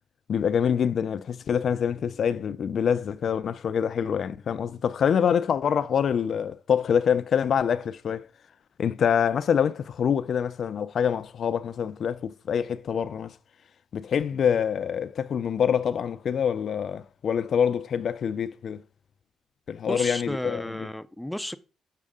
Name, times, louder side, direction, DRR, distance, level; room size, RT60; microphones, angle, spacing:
voice 1, 0.3-8.3 8.8-13.3 13.9-18.8 19.7-20.9, left 7 dB, 55° left, 0.4 m, -25 dB
voice 2, 19.9-21.6, equal, 5° left, 0.6 m, -33 dB
7.3 x 6.6 x 3.6 m
cardioid pair, 105°, 0 cm